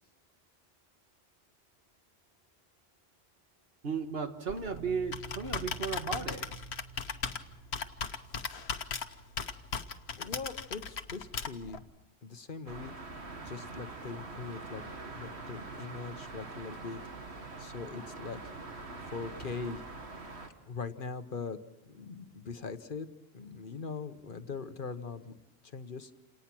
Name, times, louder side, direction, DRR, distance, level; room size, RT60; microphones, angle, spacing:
voice 1, 3.8-6.5, right 5 dB, 65° right, 6 dB, 1.7 m, -35 dB
Computer keyboard, 4.5-11.8, left 6 dB, 75° left, 1.3 m, -38 dB
sound 1, 4.7-9.9, right 5 dB, 30° right, 0.8 m, -52 dB
voice 2, 10.2-11.8 12.2-12.9 13.4-14.8 15.1-17.0 17.6-18.4 19.1-19.8 20.7-21.6 21.9-23.1 23.3-25.3 25.6-26.1, left 4 dB, 55° left, 10 dB, 1.2 m, -41 dB
sound 2, 12.7-20.5, right 3 dB, 80° right, 2.1 m, -44 dB
28.0 x 18.5 x 6.1 m, 0.94 s
omnidirectional pair, 1.1 m